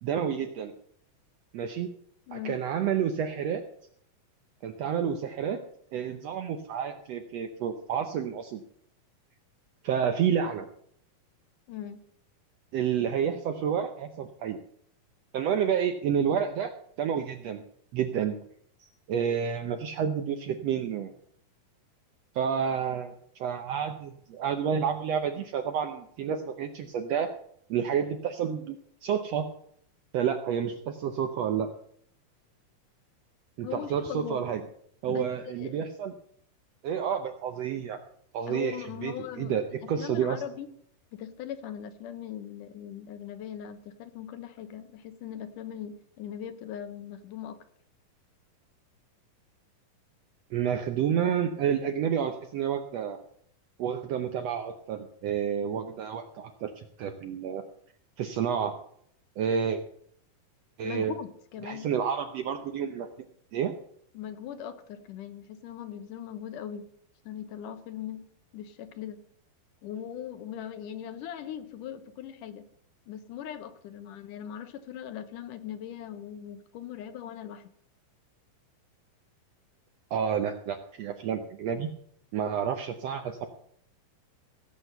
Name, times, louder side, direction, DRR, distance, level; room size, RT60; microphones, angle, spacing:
voice 1, 0.0-0.7 1.5-1.9 2.3-3.6 4.6-5.6 5.9-8.6 9.8-10.7 12.7-14.6 15.3-16.7 17.0-17.6 17.9-18.4 18.8-21.1 22.3-27.3 27.7-28.8 29.0-29.4 30.1-31.7 33.6-34.6 35.0-36.1 36.8-38.0 38.3-38.8 39.0-40.4 50.5-53.2 53.8-57.6 58.2-58.7 59.4-59.8 60.8-61.2 61.6-63.1 63.5-63.7 80.1-81.9 82.3-83.5, right 8 dB, 80° right, 7 dB, 1.5 m, -29 dB
voice 2, 2.3-2.6 11.7-12.0 33.6-34.4 35.1-35.8 38.5-40.7 41.1-47.6 60.8-61.9 64.1-66.9 67.3-68.3 68.5-69.2 69.8-72.7 73.1-77.7, left 10 dB, 75° left, 10 dB, 2.4 m, -40 dB
16.5 x 8.0 x 6.7 m, 0.66 s
omnidirectional pair, 4.0 m